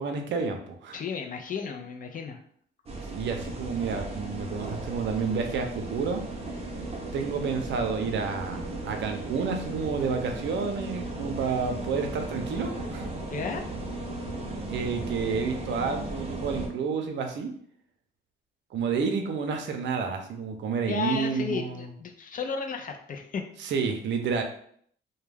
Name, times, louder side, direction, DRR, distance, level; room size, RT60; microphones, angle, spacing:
voice 1, 0.0-1.0 3.1-6.2 7.1-13.1 14.7-17.5 18.7-21.9 23.6-24.4, right 5 dB, 65° right, 4 dB, 0.5 m, -30 dB
voice 2, 0.9-2.4 13.3-13.7 20.9-23.4, left 5 dB, 45° left, 4 dB, 0.4 m, -33 dB
sound 1, 2.9-16.7, right 2 dB, 30° right, 0.7 m, -36 dB
2.2 x 2.1 x 3.2 m, 0.62 s
cardioid pair, 90°, 20 cm